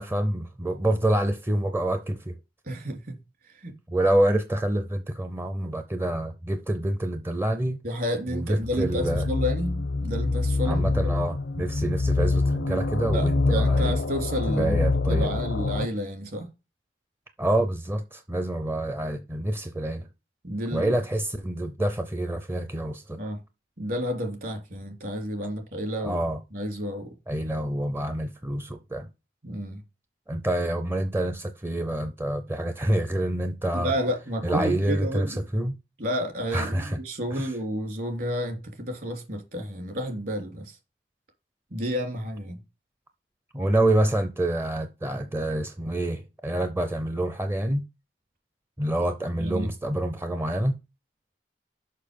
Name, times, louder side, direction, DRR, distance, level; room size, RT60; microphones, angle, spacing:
voice 1, 0.0-2.4 3.9-7.8 8.3-9.3 10.6-14.0 14.5-15.3 17.4-20.1 20.7-23.2 26.0-26.4 27.3-29.1 30.3-33.9 34.4-35.8 36.5-37.0 37.3-37.5 43.5-47.8 48.8-50.8, right 1 dB, 15° right, 0.5 m, -27 dB
voice 2, 2.7-3.2 3.5-3.7 7.8-11.1 13.1-16.5 20.4-20.9 23.2-23.4 23.8-26.2 26.5-27.1 29.4-29.8 33.7-35.4 36.0-40.8 41.7-42.6 49.4-49.7, equal, 55° right, 2.8 m, -31 dB
sound 1, 8.6-15.9, left 3 dB, 80° left, 0.7 m, -25 dB
6.6 x 5.6 x 5.1 m
head